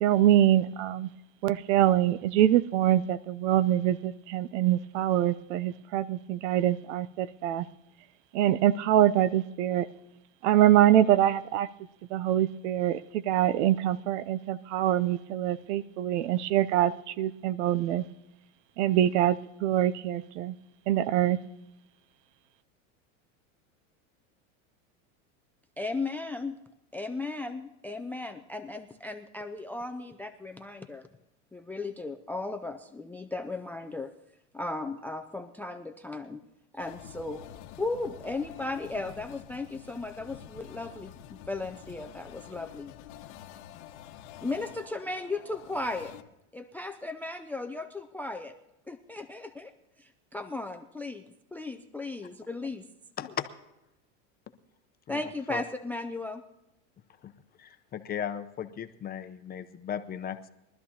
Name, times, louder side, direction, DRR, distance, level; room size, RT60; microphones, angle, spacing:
voice 1, 0.0-1.1 1.4-7.7 8.3-9.9 10.4-11.7 12.1-18.0 18.8-20.6 20.9-21.4, right 12 dB, 75° right, 19 dB, 0.6 m, -24 dB
voice 2, 25.8-26.6 26.9-31.1 31.5-34.1 34.5-36.4 36.7-37.4 37.8-41.1 41.5-42.9 44.4-46.1 46.5-48.5 48.9-49.7 50.0-51.2 51.5-52.8 55.1-56.4, left 2 dB, 5° left, 10 dB, 0.3 m, -36 dB
sound 1, 36.8-46.2, left 10 dB, 75° left, 1.1 m, -48 dB
voice 3, 57.6-60.5, left 9 dB, 25° left, 8 dB, 0.7 m, -36 dB
22.5 x 12.5 x 2.8 m, 0.89 s
supercardioid pair, 120°, 36 cm